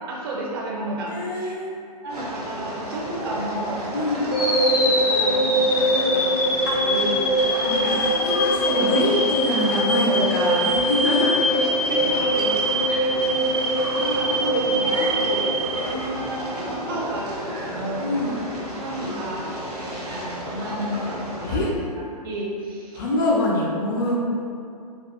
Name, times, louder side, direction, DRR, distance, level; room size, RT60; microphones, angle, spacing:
voice 1, 0.0-1.5 2.0-3.8 4.1-7.3 7.6-8.1 9.7-9.8 11.9-13.2 13.9-18.4 18.8-19.5 19.8-23.0, right 1 dB, 35° right, -3 dB, 0.5 m, -32 dB
voice 2, 1.1-2.0 3.9-4.3 6.7-6.8 7.8-11.4 13.1-13.6 18.0-18.4 21.4-21.7 22.9-24.2, left 2 dB, 30° left, -3 dB, 0.4 m, -25 dB
sound 1, 2.1-21.6, equal, 75° right, 0.8 m, -32 dB
sound 2, 4.3-16.4, equal, 65° left, 0.7 m, -22 dB
3.4 x 2.2 x 2.4 m, 2.5 s
figure-of-eight pair, 115°, 20 cm